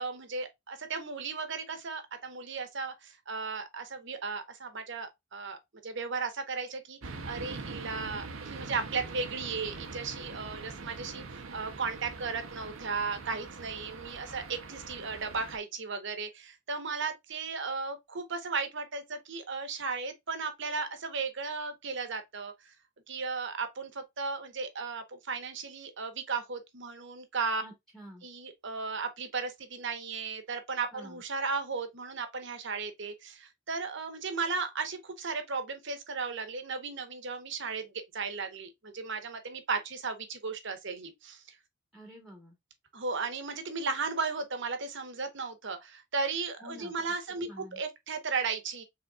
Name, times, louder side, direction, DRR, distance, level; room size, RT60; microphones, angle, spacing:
voice 1, 0.0-22.7 23.1-27.6 28.2-41.6 42.9-48.8, right 4 dB, 60° right, 1.0 m, -35 dB
sound 1, 7.0-15.6, right 3 dB, 80° right, 0.7 m, -43 dB
voice 2, 27.6-28.3 30.9-31.2 41.9-42.6 46.6-46.9 47.4-47.8, equal, ahead, 1.1 m, -49 dB
5.1 x 3.5 x 2.3 m
head